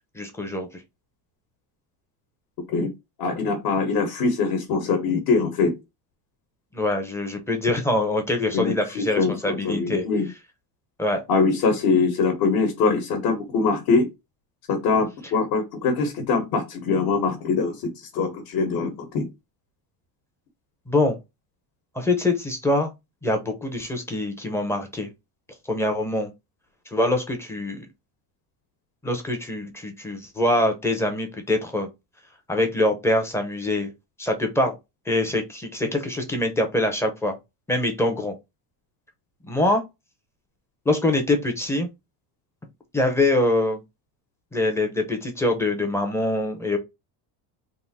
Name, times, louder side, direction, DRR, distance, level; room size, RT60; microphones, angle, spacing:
voice 1, 0.1-0.8 6.7-10.0 11.0-11.2 20.9-21.2 21.9-22.9 23.2-25.1 25.7-26.3 26.9-27.9 29.0-31.9 32.5-33.9 34.2-34.7 35.1-37.4 37.7-38.3 39.4-39.8 40.9-41.9 42.9-43.8 44.5-46.8, left 1 dB, 5° left, 0.6 m, -24 dB
voice 2, 3.2-5.7 8.5-10.3 11.3-14.1 14.7-19.3, left 4 dB, 55° left, 1.2 m, -23 dB
3.6 x 2.5 x 4.1 m
cardioid pair, 175°, 45 cm